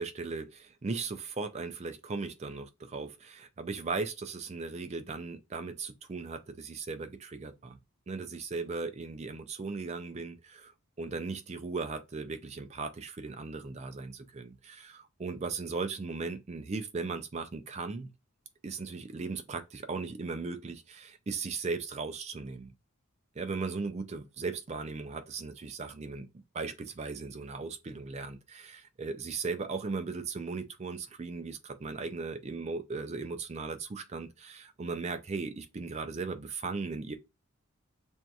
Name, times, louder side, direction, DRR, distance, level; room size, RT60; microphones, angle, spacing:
voice 1, 0.0-7.8 8.1-10.7 11.0-18.1 18.6-22.7 23.4-26.3 26.5-37.2, right 4 dB, 30° right, 0.4 m, -37 dB
5.9 x 2.6 x 2.3 m
head